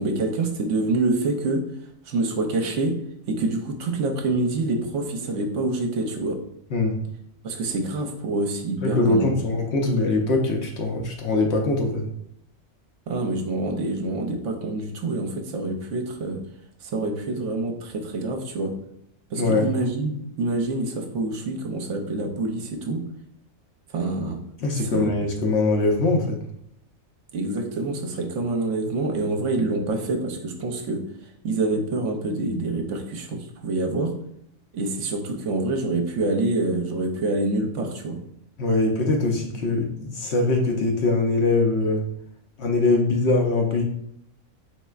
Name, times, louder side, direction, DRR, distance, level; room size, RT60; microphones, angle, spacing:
voice 1, 0.0-1.6 2.1-3.0 3.3-6.4 7.4-9.4 13.1-16.4 16.8-18.7 19.3-23.0 23.9-24.4 24.9-25.1 27.3-31.0 31.4-34.1 34.7-38.2, right 2 dB, 65° right, 4 dB, 0.9 m, -26 dB
voice 2, 8.8-12.0 19.3-19.7 24.6-26.4 38.6-42.0 42.6-43.8, left 2 dB, 60° left, 2 dB, 0.8 m, -22 dB
4.4 x 4.1 x 2.3 m, 0.71 s
omnidirectional pair, 1.4 m